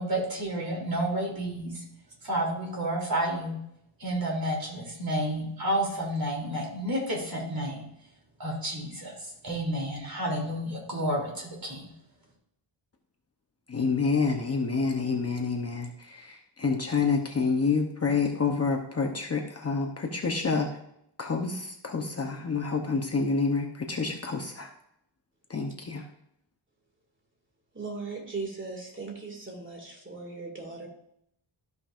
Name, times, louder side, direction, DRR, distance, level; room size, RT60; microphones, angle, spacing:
voice 1, 0.0-1.8 2.2-3.6 4.0-7.8 8.4-11.8, right 1 dB, 50° right, -1 dB, 3.1 m, -30 dB
voice 2, 13.7-20.7 21.2-24.7 25.5-26.0, left 4 dB, 30° left, 2 dB, 0.9 m, -28 dB
voice 3, 27.7-30.9, right 3 dB, 25° right, 1 dB, 2.2 m, -38 dB
13.5 x 5.4 x 2.5 m, 0.75 s
wide cardioid pair, 120°, 48 cm